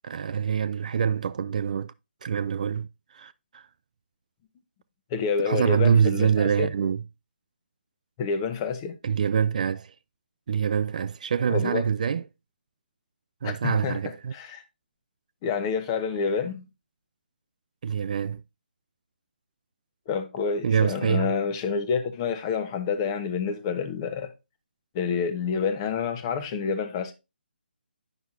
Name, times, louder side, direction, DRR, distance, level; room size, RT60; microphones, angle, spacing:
voice 1, 0.0-1.9 2.2-2.9 3.1-3.6 5.5-7.0 9.0-9.9 10.5-12.2 13.4-14.3 17.8-18.4 20.6-21.3, right 7 dB, 45° right, 0.3 m, -25 dB
voice 2, 5.1-6.7 8.2-9.0 11.5-11.8 13.4-14.0 14.3-14.6 15.4-16.6 20.1-24.3 24.9-27.1, left 6 dB, 25° left, 0.9 m, -28 dB
9.2 x 5.8 x 2.5 m
figure-of-eight pair, 150°, 6 cm